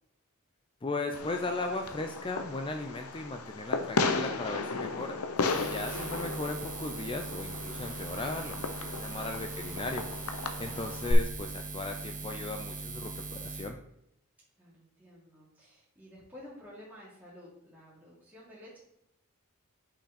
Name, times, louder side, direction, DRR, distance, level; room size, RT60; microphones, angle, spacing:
voice 1, 0.8-10.1 10.4-13.8, left 2 dB, 25° left, 5 dB, 0.4 m, -37 dB
Fireworks, 1.1-11.1, left 4 dB, 75° left, 0.7 m, -35 dB
Buzz, 5.4-13.7, right 3 dB, 35° right, 1.0 m, -40 dB
voice 2, 14.6-18.8, left 1 dB, 10° right, -9 dB, 2.1 m, -52 dB
5.7 x 5.6 x 4.2 m, 0.78 s
head